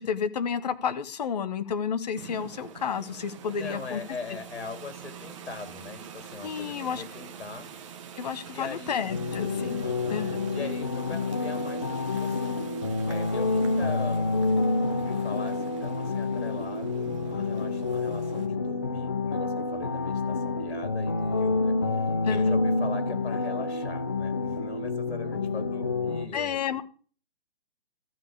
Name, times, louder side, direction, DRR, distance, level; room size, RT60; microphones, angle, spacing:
voice 1, 0.0-4.0 6.4-7.0 8.2-10.4 22.2-22.5 26.3-26.8, left 7 dB, 40° left, 10 dB, 1.0 m, -31 dB
sound 1, 2.1-18.5, right 8 dB, 30° right, 1.2 m, -45 dB
voice 2, 3.5-7.7 8.5-9.1 9.8-12.5 13.1-14.4 14.9-26.6, left 4 dB, 70° left, 7 dB, 3.7 m, -41 dB
sound 2, 9.1-26.3, left 3 dB, 20° left, 0.4 m, -28 dB
13.0 x 5.0 x 8.4 m, 0.41 s
hypercardioid pair, 160°, 33 cm